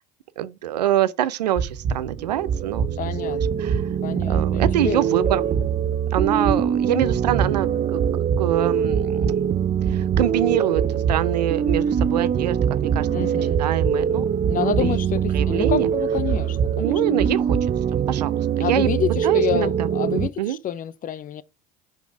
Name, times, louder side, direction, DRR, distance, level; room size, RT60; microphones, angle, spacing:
voice 1, 0.4-2.9 3.2-3.8 4.3-5.6 6.1-8.0 8.4-9.4 9.9-13.3 13.6-14.3 14.6-14.9 15.3-15.9 16.8-17.6 17.9-18.9 19.2-19.9 20.4-20.6, right 12 dB, 90° right, 0.6 m, -25 dB
sound 1, 1.6-17.9, right 6 dB, 55° right, 1.6 m, -28 dB
sound 2, 1.9-20.3, right 8 dB, 35° right, 0.6 m, -24 dB
voice 2, 3.0-3.6 4.0-5.0 13.1-13.6 14.5-17.2 18.6-21.4, left 10 dB, 40° left, 0.7 m, -28 dB
6.6 x 5.1 x 4.9 m
hypercardioid pair, 70°, 20 cm